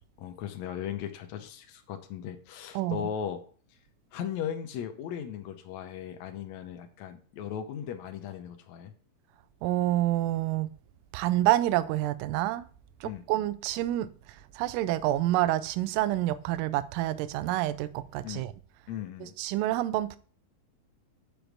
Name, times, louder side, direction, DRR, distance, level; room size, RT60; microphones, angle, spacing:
voice 1, 0.2-3.4 4.1-8.9 13.0-13.2 18.2-18.4 18.9-19.3, left 9 dB, 80° left, 1.6 m, -37 dB
voice 2, 2.7-3.1 9.6-10.7 11.1-12.7 13.0-18.5 19.2-20.2, right 14 dB, 80° right, 2.0 m, -28 dB
6.1 x 5.1 x 6.4 m
omnidirectional pair, 4.3 m